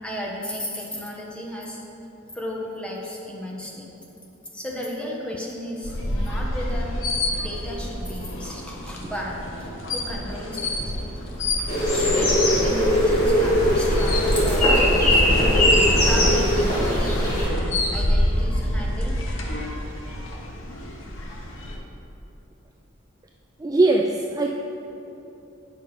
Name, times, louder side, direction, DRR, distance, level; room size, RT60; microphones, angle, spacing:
voice 1, 0.0-1.8 2.3-3.9 4.5-6.9 7.4-11.0 11.6-15.7 16.1-17.3 17.9-19.2, equal, 5° left, -3 dB, 1.1 m, -34 dB
sound 1, 5.8-21.8, left 1 dB, 70° left, 1.0 m, -27 dB
sound 2, 10.8-11.5 11.8-16.9, equal, 30° left, 1.5 m, -29 dB
sound 3, 11.7-17.5, equal, 45° left, 1.9 m, -20 dB
voice 2, 23.6-24.5, right 2 dB, 20° right, 1 dB, 0.3 m, -20 dB
8.4 x 5.6 x 4.8 m, 2.9 s
head